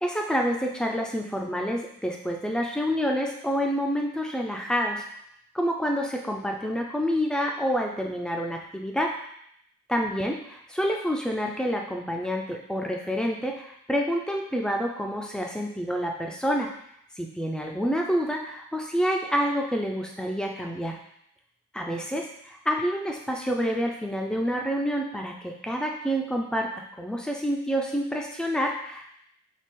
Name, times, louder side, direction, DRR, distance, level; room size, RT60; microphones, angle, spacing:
voice 1, 0.0-5.0 5.5-9.1 9.9-16.7 17.2-21.0 21.7-29.0, equal, 5° left, 1 dB, 0.4 m, -28 dB
4.1 x 3.3 x 3.7 m, 0.72 s
head